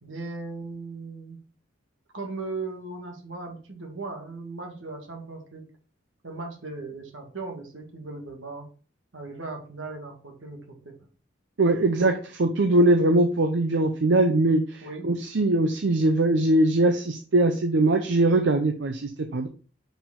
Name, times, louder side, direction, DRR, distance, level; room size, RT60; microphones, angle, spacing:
voice 1, 0.0-1.4 2.1-5.6 6.2-8.7 9.1-10.9 14.8-15.1, right 3 dB, 80° right, 2 dB, 1.7 m, -37 dB
voice 2, 11.6-19.5, right 2 dB, 65° right, 6 dB, 0.6 m, -21 dB
5.5 x 4.8 x 3.6 m, 0.40 s
head